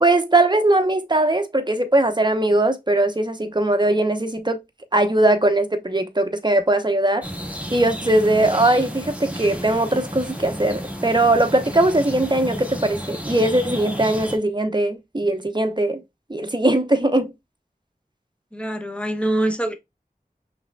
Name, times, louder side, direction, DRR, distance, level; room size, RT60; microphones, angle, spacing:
voice 1, 0.0-4.6 4.9-7.2 7.7-16.0 16.3-17.3, right 1 dB, 30° right, 0.8 m, -20 dB
sound 1, 7.2-14.4, equal, 10° right, 1.3 m, -32 dB
voice 2, 18.5-19.7, right 1 dB, 5° left, 0.9 m, -24 dB
5.4 x 3.4 x 2.2 m
wide cardioid pair, 40°, 16 cm